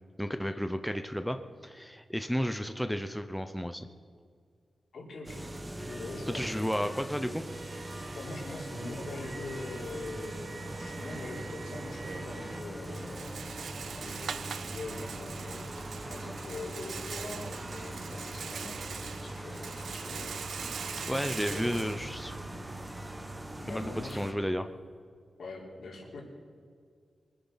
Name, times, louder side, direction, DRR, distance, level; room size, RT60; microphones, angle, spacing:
voice 1, 0.2-3.9 6.3-7.4 21.1-22.4 23.7-24.6, equal, ahead, 8 dB, 0.6 m, -32 dB
voice 2, 4.9-5.5 5.8-6.6 8.1-13.5 13.9-20.8 21.4-21.9 23.6-24.2 25.4-26.2, left 2 dB, 75° left, -2 dB, 3.8 m, -43 dB
sound 1, 5.3-24.3, right 1 dB, 15° right, 1.1 m, -41 dB
sound 2, 7.5-12.6, right 4 dB, 70° right, 1.9 m, -47 dB
Rattle, 11.8-22.8, right 6 dB, 90° right, 0.5 m, -42 dB
24.0 x 10.0 x 5.7 m, 2.1 s
wide cardioid pair, 150°, 0 cm